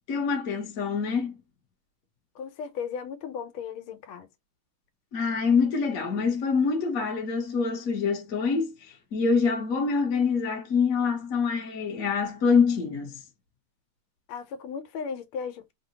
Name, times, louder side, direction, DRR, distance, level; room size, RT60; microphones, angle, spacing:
voice 1, 0.1-1.3 5.1-8.7 9.1-13.2, left 5 dB, 50° left, 1.2 m, -25 dB
voice 2, 2.3-4.3 14.3-15.7, left 6 dB, 85° left, 1.6 m, -36 dB
3.7 x 2.1 x 2.8 m
omnidirectional pair, 2.3 m